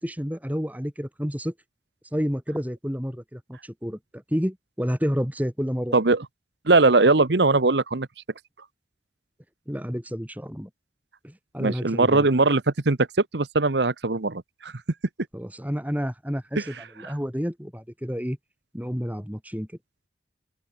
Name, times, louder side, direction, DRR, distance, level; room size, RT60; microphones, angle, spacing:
voice 1, 0.0-1.5 2.1-6.0 9.7-10.7 11.2-12.3 15.3-18.4 18.7-19.7, equal, 10° right, 3.5 m, -30 dB
voice 2, 5.9-6.2 6.7-8.1 11.6-13.0 13.3-14.7, right 3 dB, 75° right, 1.1 m, -20 dB
open air
head